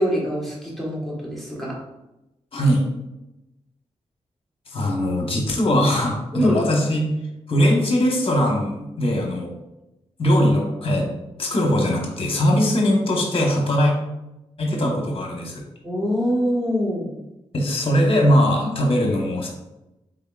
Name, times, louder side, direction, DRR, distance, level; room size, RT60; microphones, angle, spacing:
voice 1, 0.0-1.8 6.3-6.6 15.8-17.1, equal, ahead, -5 dB, 1.4 m, -24 dB
voice 2, 2.5-2.8 4.7-7.0 7.5-9.5 10.2-11.0 11.4-13.9 14.6-15.6 17.5-19.5, equal, 50° left, 1 dB, 1.0 m, -20 dB
3.7 x 3.5 x 2.4 m, 0.93 s
cardioid pair, 70°, 12 cm